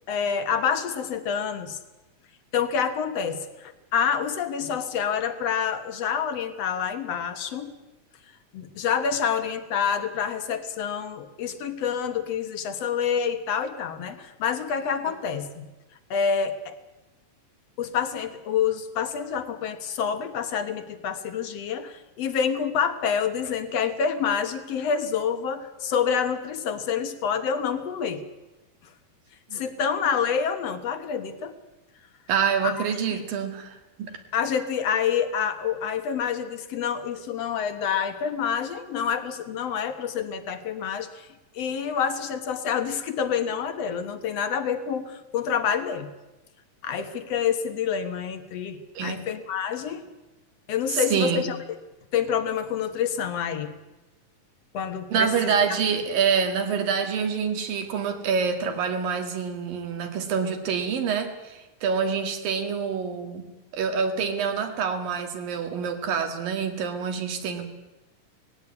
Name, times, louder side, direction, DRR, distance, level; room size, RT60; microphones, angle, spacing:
voice 1, 0.1-1.8 2.5-7.7 8.5-15.6 16.1-16.8 17.8-28.2 29.5-31.6 32.6-33.2 34.3-41.3 41.5-46.1 46.8-50.1 50.7-51.6 52.1-53.7 54.7-55.5, left 7 dB, 60° left, 10 dB, 1.9 m, -27 dB
voice 2, 32.3-34.1 49.0-49.2 50.9-51.5 55.1-63.4 63.7-67.7, right 6 dB, 80° right, 6 dB, 3.7 m, -26 dB
19.0 x 16.0 x 9.7 m, 1.0 s
omnidirectional pair, 4.0 m